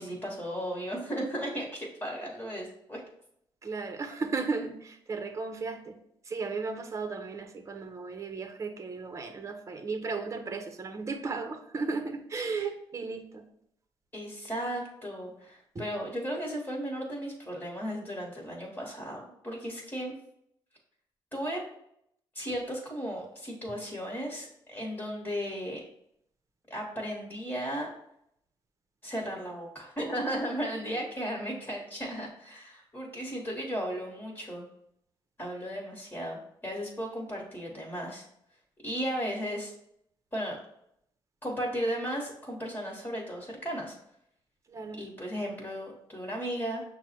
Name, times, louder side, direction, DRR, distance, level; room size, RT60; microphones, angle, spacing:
voice 1, 0.0-3.0 12.6-12.7 14.1-20.1 21.3-21.6 22.3-25.8 26.7-27.9 29.0-34.6 35.4-38.2 38.8-39.7 40.3-40.6 41.4-43.9 45.0-46.8, equal, 25° left, -2 dB, 1.2 m, -35 dB
voice 2, 3.6-6.0 6.2-13.4 15.7-15.8 44.7-45.0, right 4 dB, 35° right, 7 dB, 0.6 m, -35 dB
5.9 x 2.1 x 4.2 m, 0.74 s
cardioid pair, 80°, 9 cm